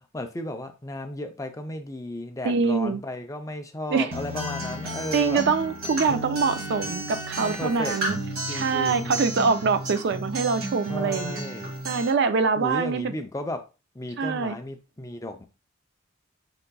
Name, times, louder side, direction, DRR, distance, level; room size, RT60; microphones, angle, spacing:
voice 1, 0.0-5.4 7.4-8.0 8.5-9.2 10.9-11.7 12.6-13.6 13.9-15.4, left 1 dB, 15° left, 6 dB, 0.5 m, -34 dB
voice 2, 2.4-3.0 3.9-4.1 5.1-8.2 8.5-11.4 11.8-13.2 14.2-14.6, right 5 dB, 55° right, 11 dB, 0.4 m, -24 dB
Acoustic guitar, 4.1-12.1, right 1 dB, 90° right, 1.6 m, -33 dB
5.6 x 3.8 x 2.2 m, 0.30 s
head